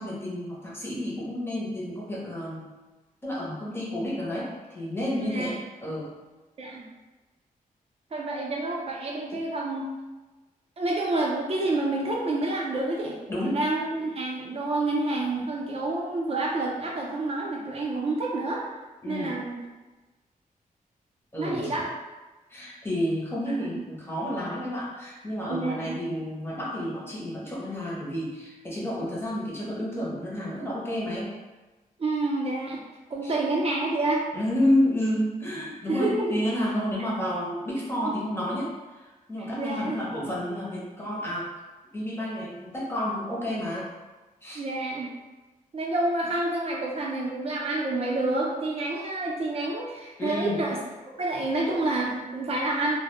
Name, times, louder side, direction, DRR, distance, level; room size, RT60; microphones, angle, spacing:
voice 1, 0.0-2.7 3.2-6.1 13.3-13.6 19.0-19.4 21.3-21.8 22.5-31.3 33.2-33.3 34.3-41.5 41.9-43.9 44.4-44.6 50.2-50.7, left 1 dB, 15° left, -6 dB, 0.6 m, -30 dB
voice 2, 5.2-5.6 6.6-6.8 8.1-9.9 10.8-13.2 13.4-18.7 19.1-19.5 21.4-21.9 25.5-26.0 32.0-32.8 33.1-34.2 35.9-36.4 38.0-38.1 39.4-40.0 44.5-45.1 45.7-50.8 51.2-53.0, right 2 dB, 45° right, -2 dB, 0.5 m, -28 dB
2.1 x 2.0 x 3.0 m, 1.2 s
wide cardioid pair, 155°, 15 cm